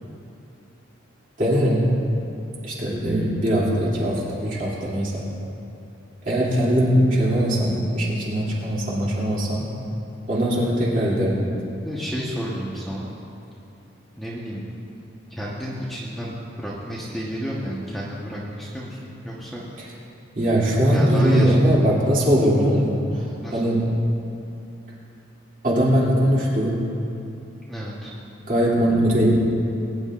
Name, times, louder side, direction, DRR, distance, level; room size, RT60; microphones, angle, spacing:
voice 1, 1.4-1.9 2.6-5.2 6.2-9.7 10.3-11.4 20.3-23.9 25.6-26.8 28.5-29.4, equal, 40° right, -6 dB, 2.8 m, -20 dB
voice 2, 11.8-13.1 14.2-14.6 15.3-19.6 20.9-21.6 23.4-23.7 27.7-28.1, equal, ahead, -7 dB, 1.1 m, -31 dB
21.0 x 10.0 x 2.5 m, 2.7 s
head